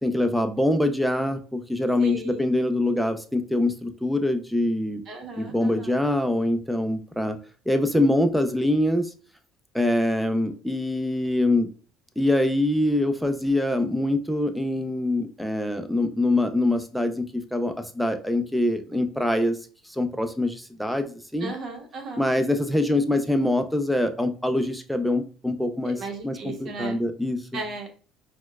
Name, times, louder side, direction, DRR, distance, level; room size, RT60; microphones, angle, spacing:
voice 1, 0.0-5.0 5.4-7.4 7.7-9.1 9.7-11.7 12.2-17.2 17.5-19.5 19.9-21.5 22.2-26.0 26.2-27.4, left 1 dB, ahead, 6 dB, 0.5 m, -24 dB
voice 2, 2.0-2.4 5.1-6.0 21.4-22.3 25.8-27.0 27.5-27.9, right 3 dB, 50° right, 3 dB, 0.9 m, -36 dB
4.3 x 2.2 x 2.3 m, 0.39 s
supercardioid pair, 100°, 0 cm